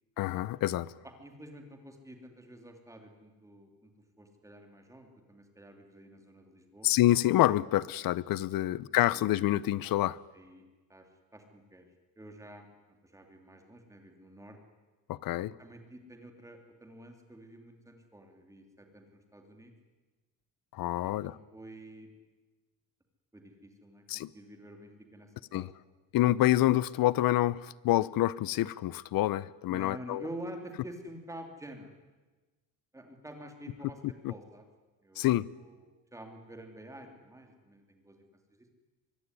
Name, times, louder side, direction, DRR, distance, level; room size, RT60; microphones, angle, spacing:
voice 1, 0.2-0.9 6.8-10.2 15.1-15.5 20.7-21.3 24.1-24.3 25.5-25.7 26.1-30.2 34.2-34.3 35.2-35.5, left 15 dB, 60° left, 0.8 m, -27 dB
voice 2, 1.0-3.9 4.2-6.9 8.6-8.8 9.1-9.2 10.3-10.6 10.9-11.1 11.3-11.9 12.2-12.7 13.0-14.6 15.6-19.7 20.9-22.1 23.3-25.7 29.7-31.9 32.9-34.0 34.3-34.6 35.0-35.8 36.1-38.2, right 1 dB, 10° right, 3.1 m, -48 dB
24.5 x 21.0 x 9.8 m
cardioid pair, 175°, 39 cm